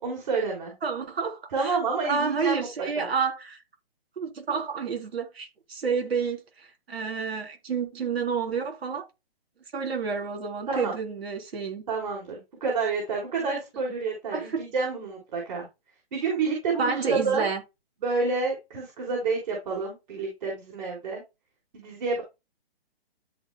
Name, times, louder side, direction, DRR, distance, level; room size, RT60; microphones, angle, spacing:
voice 1, 0.0-0.7 1.5-3.1 10.7-10.9 11.9-15.7 16.1-17.4 18.0-21.2 21.7-22.2, right 4 dB, 45° right, 4.5 m, -29 dB
voice 2, 0.8-1.8 2.1-3.6 4.2-9.1 9.7-11.8 14.3-14.6 16.8-17.6, right 5 dB, 85° right, 3.8 m, -29 dB
13.0 x 5.1 x 2.3 m
hypercardioid pair, 170°, 30 cm